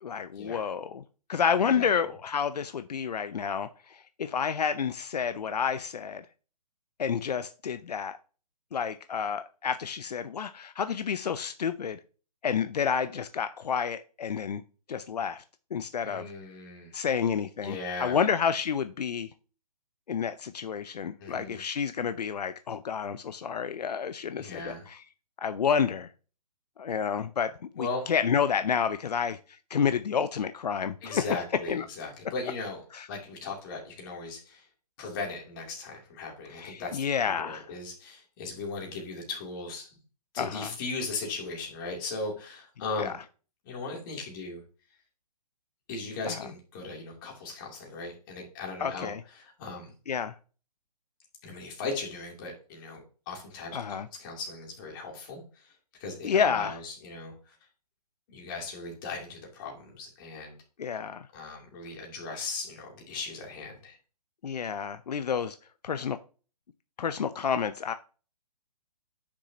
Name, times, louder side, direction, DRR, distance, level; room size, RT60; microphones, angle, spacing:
voice 1, 0.0-1.0 1.3-6.3 7.0-8.2 8.7-12.0 12.4-14.6 14.9-15.4 15.7-16.3 16.9-19.3 20.1-25.0 25.4-26.1 26.8-29.4 29.7-31.3 31.7-31.9 32.9-33.1 36.5-37.7 40.4-40.7 43.0-43.1 46.2-46.5 48.8-49.2 50.1-50.3 53.7-54.1 56.2-56.8 60.8-61.3 64.4-65.6 65.8-66.2 67.0-67.9, left 7 dB, 80° left, 0.6 m, -30 dB
voice 2, 16.0-16.9 17.6-18.2 21.2-21.6 24.3-24.8 27.8-28.1 31.0-32.8 33.1-34.6 35.0-37.0 37.4-39.9 40.3-43.1 43.6-44.6 45.9-49.9 51.4-55.7 56.0-57.5 58.3-60.5 61.3-64.0, left 3 dB, 30° left, 2.9 m, -38 dB
9.9 x 6.2 x 2.9 m
hypercardioid pair, 155°, 21 cm